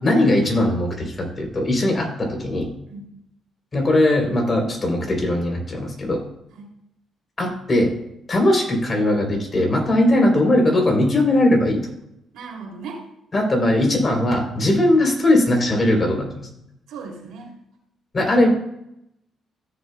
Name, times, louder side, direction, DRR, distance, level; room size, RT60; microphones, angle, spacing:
voice 1, 0.0-2.7 3.7-6.2 7.4-7.9 8.3-11.8 13.3-16.3 18.1-18.5, left 1 dB, 35° left, 1 dB, 3.4 m, -19 dB
voice 2, 12.3-13.0 16.9-17.5, right 4 dB, 85° right, 0 dB, 2.8 m, -36 dB
15.0 x 7.2 x 2.2 m, 0.78 s
cardioid pair, 90°, 0 cm